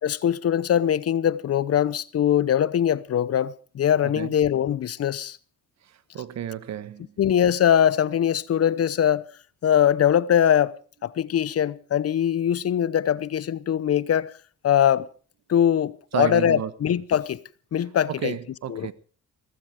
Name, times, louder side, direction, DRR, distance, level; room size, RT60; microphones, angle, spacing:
voice 1, 0.0-5.4 7.2-9.2 9.6-10.7 11.0-14.3 14.6-15.1 15.5-17.4 17.7-18.4 18.7-18.9, left 9 dB, 50° left, 0.9 m, -22 dB
voice 2, 6.1-7.1 16.1-16.7 18.1-18.9, right 10 dB, 60° right, 1.3 m, -31 dB
17.0 x 14.5 x 4.9 m
cardioid pair, 90°, 30 cm